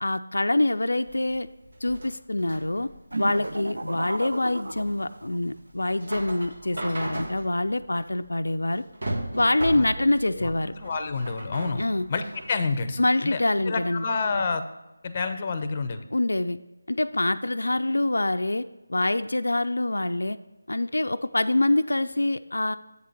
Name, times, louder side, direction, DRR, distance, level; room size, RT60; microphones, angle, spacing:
voice 1, 0.0-1.5 1.8-2.9 3.2-8.8 9.3-10.7 11.8-12.1 13.0-14.1 16.1-16.6 16.9-18.6 18.9-20.4 20.7-22.8, left 2 dB, 85° left, 9 dB, 0.3 m, -25 dB
sound 1, 1.0-12.6, right 1 dB, 60° right, 1.4 m, -37 dB
sound 2, 3.1-5.5, right 2 dB, 85° right, 0.5 m, -34 dB
voice 2, 9.7-10.5 10.8-11.8 12.1-14.6 15.0-16.1, left 4 dB, 30° left, 9 dB, 0.5 m, -29 dB
8.0 x 3.8 x 6.7 m, 1.1 s
figure-of-eight pair, 165°, 0 cm